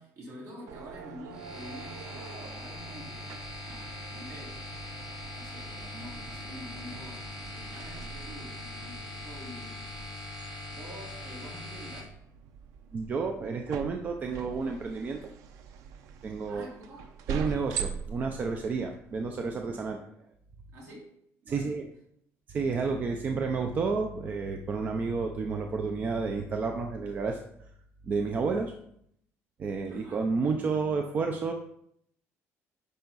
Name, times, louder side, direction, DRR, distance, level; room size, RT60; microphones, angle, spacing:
voice 1, 0.0-4.6 5.3-10.2 10.7-12.2 16.5-17.0 19.7-19.9 20.7-21.1 21.4-21.8 29.8-30.2, equal, 60° right, -4 dB, 4.0 m, -47 dB
sound 1, 0.7-19.6, right 6 dB, 90° right, 0.8 m, -43 dB
sound 2, 1.3-12.0, left 1 dB, 10° right, 2.0 m, -42 dB
voice 2, 12.9-15.2 16.2-16.7 17.3-20.1 21.5-21.9 22.5-27.4 28.0-28.7 29.6-31.5, right 4 dB, 30° right, 4 dB, 0.6 m, -31 dB
10.5 x 5.7 x 4.1 m, 0.71 s
cardioid pair, 170°, 5 cm